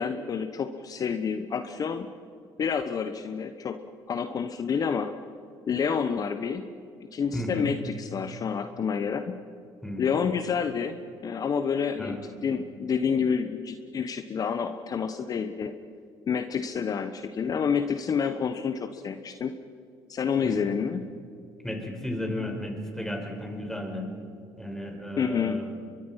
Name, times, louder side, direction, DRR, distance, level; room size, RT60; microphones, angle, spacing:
voice 1, 0.0-2.1 2.6-3.8 4.1-5.1 5.7-6.7 7.1-9.3 10.0-15.7 16.3-19.5 20.1-21.1 25.2-25.6, left 6 dB, 45° left, 9 dB, 1.1 m, -28 dB
voice 2, 7.3-7.7 9.8-10.0 12.0-12.2 20.4-20.7 21.6-24.1 24.6-25.7, left 1 dB, 5° left, 3 dB, 5.2 m, -34 dB
23.0 x 22.5 x 5.8 m, 2.5 s
supercardioid pair, 85°, 9 cm